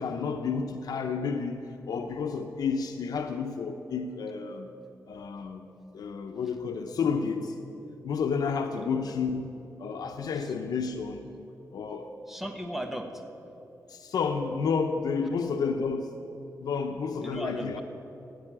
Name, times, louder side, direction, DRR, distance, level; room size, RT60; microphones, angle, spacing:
voice 1, 0.0-4.7 5.1-5.7 5.9-7.5 8.0-11.3 11.7-12.1 13.9-16.1 16.6-17.8, left 5 dB, 85° left, 5 dB, 0.8 m, -31 dB
voice 2, 12.3-13.2 17.2-17.8, equal, 5° right, 5 dB, 1.3 m, -37 dB
15.5 x 8.9 x 8.9 m, 2.9 s
wide cardioid pair, 135°, 6 cm